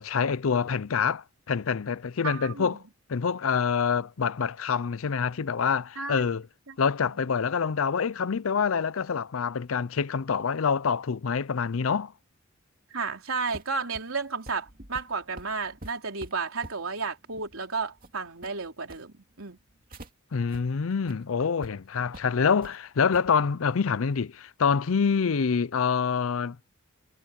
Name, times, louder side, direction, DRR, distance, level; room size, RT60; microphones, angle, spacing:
voice 1, 0.0-2.8 3.1-6.4 6.8-12.1 20.3-26.7, left 6 dB, 80° left, 0.5 m, -26 dB
voice 2, 2.2-2.8 6.0-6.3 6.7-6.8 12.9-19.6, right 4 dB, 85° right, 3.6 m, -33 dB
sound 1, 13.5-20.1 20.5-20.6 21.0-21.1 21.6-21.7 22.1-22.7 23.1-23.3, right 1 dB, 45° right, 2.5 m, -47 dB
head